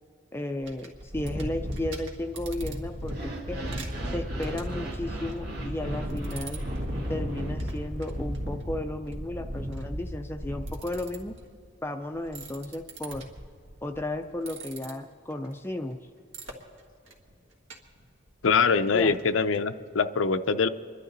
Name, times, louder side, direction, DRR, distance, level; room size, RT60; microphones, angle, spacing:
voice 1, 0.3-3.6 4.0-6.6 7.1-11.3 11.8-13.3 13.8-16.1 18.9-19.1, left 1 dB, 10° left, 5 dB, 0.4 m, -34 dB
sound 1, 0.6-11.4 12.2-14.2 14.5-14.9 16.3-16.5 17.1-17.3 17.7-17.8 18.0-18.1 18.4-18.5 19.0-19.1 19.5-19.6, equal, 70° right, 1.7 m, -35 dB
sound 2, 3.0-8.2, right 2 dB, 55° right, 2.2 m, -41 dB
voice 2, 18.4-20.7, left 5 dB, 80° left, 11 dB, 0.5 m, -23 dB
27.0 x 11.5 x 4.0 m, 2.2 s
head